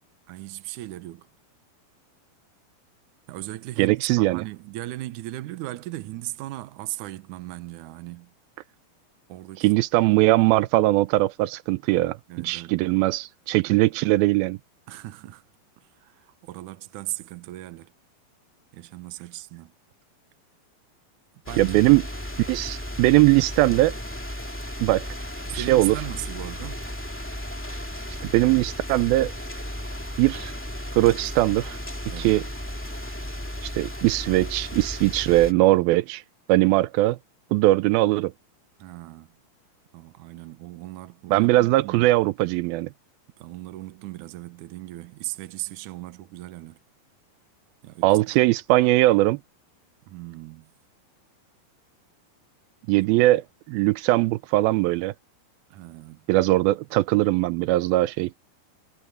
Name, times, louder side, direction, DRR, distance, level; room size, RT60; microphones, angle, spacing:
voice 1, 0.3-1.3 3.3-8.3 9.3-9.7 12.3-12.8 14.9-15.4 16.0-17.9 18.7-19.7 21.5-21.9 22.4-22.7 25.5-26.9 32.1-32.4 38.8-39.4 39.9-42.1 43.4-46.8 47.8-48.2 50.1-50.7 55.7-56.3, right 16 dB, 70° right, 2.2 m, -37 dB
voice 2, 3.8-4.4 9.6-12.2 12.4-14.6 21.6-22.0 22.5-23.9 24.8-25.1 25.5-26.0 28.2-29.3 30.2-30.5 30.9-31.8 32.2-32.4 33.6-36.2 36.5-37.2 37.5-38.3 41.3-42.9 48.0-49.4 52.9-55.1 56.3-58.3, right 18 dB, 85° right, 2.4 m, -20 dB
sound 1, 21.5-35.5, equal, 5° left, 1.5 m, -35 dB
omnidirectional pair, 4.2 m